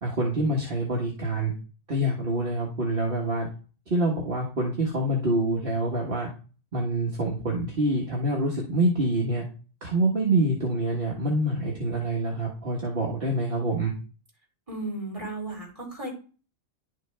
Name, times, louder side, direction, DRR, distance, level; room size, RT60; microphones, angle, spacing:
voice 1, 0.0-1.5 1.9-3.5 3.9-6.3 6.7-9.4 9.8-13.9, right 1 dB, 55° right, -2 dB, 1.7 m, -26 dB
voice 2, 14.7-16.1, right 2 dB, 30° right, -3 dB, 3.9 m, -34 dB
11.0 x 6.1 x 3.4 m, 0.37 s
omnidirectional pair, 1.1 m